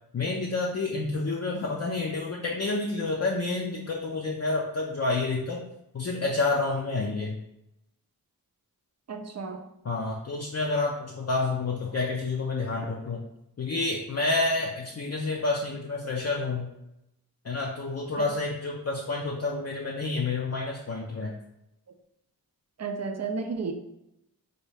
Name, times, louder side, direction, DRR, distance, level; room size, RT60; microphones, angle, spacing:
voice 1, 0.1-5.6 5.9-7.4 9.8-13.2 13.6-16.7 17.4-21.3, left 3 dB, 45° left, -2 dB, 0.5 m, -29 dB
voice 2, 9.1-9.6 18.2-18.3 22.8-23.7, right 4 dB, 45° right, 6 dB, 0.5 m, -32 dB
4.1 x 2.3 x 3.3 m, 0.84 s
wide cardioid pair, 65°, 36 cm